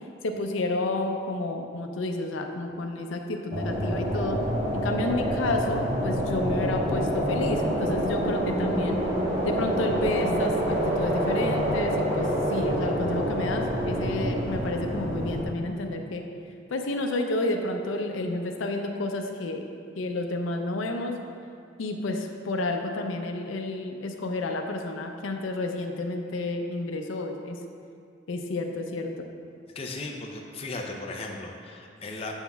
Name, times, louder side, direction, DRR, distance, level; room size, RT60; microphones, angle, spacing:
voice 1, 0.2-4.4 4.7-9.0 9.4-16.2 16.7-19.6 20.0-21.2 21.8-27.6 28.3-29.3, left 2 dB, 90° left, 4 dB, 0.5 m, -30 dB
sound 1, 3.5-15.5, equal, 30° right, 1.0 m, -27 dB
voice 2, 29.7-32.3, left 2 dB, 30° left, 1 dB, 0.4 m, -36 dB
7.2 x 7.0 x 2.3 m, 2.5 s
head